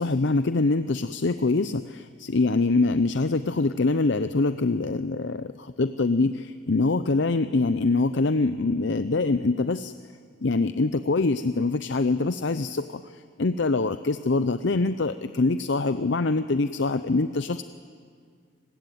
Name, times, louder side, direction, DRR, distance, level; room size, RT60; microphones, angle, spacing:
voice 1, 0.0-9.9 10.4-17.6, left 3 dB, 60° left, 12 dB, 0.6 m, -24 dB
30.0 x 21.0 x 9.3 m, 2.1 s
head